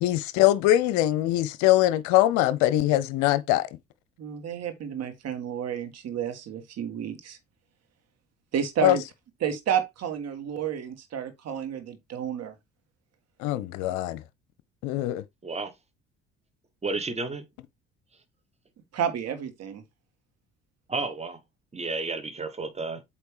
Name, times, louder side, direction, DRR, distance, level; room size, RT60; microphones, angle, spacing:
voice 1, 0.0-3.7 8.8-9.0 13.4-14.2 14.8-15.2, left 14 dB, 60° left, 0.7 m, -22 dB
voice 2, 4.2-7.4 8.5-9.0 9.4-12.5 18.9-19.8, right 8 dB, 45° right, 1.7 m, -31 dB
voice 3, 16.8-17.4 20.9-21.4 21.7-23.0, right 3 dB, 20° right, 1.3 m, -31 dB
8.0 x 3.0 x 4.8 m
figure-of-eight pair, 50°, 34 cm